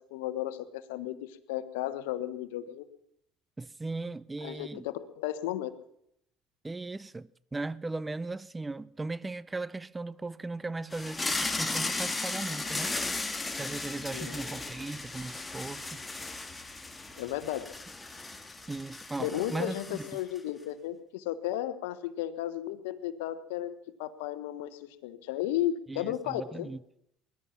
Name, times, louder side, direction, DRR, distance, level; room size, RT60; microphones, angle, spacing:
voice 1, 0.0-2.8 4.4-5.7 14.1-14.4 17.2-17.7 19.2-23.7 24.0-26.7, left 12 dB, 90° left, 1.1 m, -34 dB
voice 2, 3.6-4.8 6.6-12.9 13.6-15.9 18.7-20.0 25.9-26.8, right 3 dB, 15° right, 0.7 m, -37 dB
sound 1, 10.9-20.4, left 3 dB, 15° left, 2.0 m, -36 dB
20.5 x 12.0 x 5.9 m
supercardioid pair, 85°, 0 cm